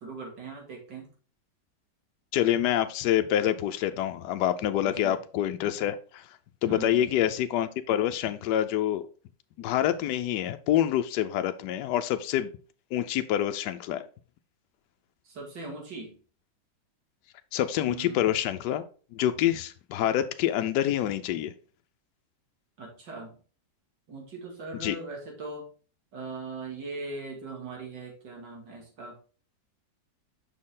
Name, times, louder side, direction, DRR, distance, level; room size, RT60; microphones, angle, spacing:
voice 1, 0.0-1.1 4.8-5.2 6.7-7.1 15.2-16.1 17.8-18.2 22.8-23.3 24.1-25.7 26.1-29.1, right 3 dB, 80° right, 0 dB, 2.9 m, -40 dB
voice 2, 2.3-6.3 6.6-9.1 9.6-12.5 12.9-14.0 17.5-18.8 19.1-21.5 24.8-25.0, left 11 dB, 75° left, 9 dB, 1.2 m, -26 dB
6.4 x 5.8 x 3.7 m, 0.38 s
omnidirectional pair, 1.9 m